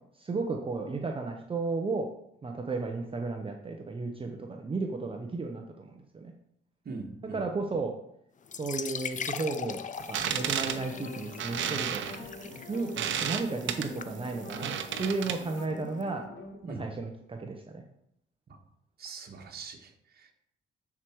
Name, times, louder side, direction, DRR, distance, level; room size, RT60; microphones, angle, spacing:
voice 1, 0.2-2.1 2.4-6.3 7.3-7.9 8.6-9.8 10.1-12.0 12.7-12.9 13.2-14.7 15.0-16.2 16.8-17.8, right 3 dB, 25° right, 2 dB, 0.9 m, -33 dB
voice 2, 6.8-7.4 16.6-16.8 18.5-18.6 19.0-20.3, right 4 dB, 50° right, 2 dB, 1.6 m, -42 dB
sound 1, 8.4-16.0, left 7 dB, 40° left, 0.6 m, -41 dB
sound 2, 10.0-15.6, right 9 dB, 70° right, 0.9 m, -33 dB
sound 3, 10.1-16.6, left 3 dB, 60° left, 3.0 m, -45 dB
9.7 x 4.8 x 4.7 m, 0.76 s
cardioid pair, 90°, 20 cm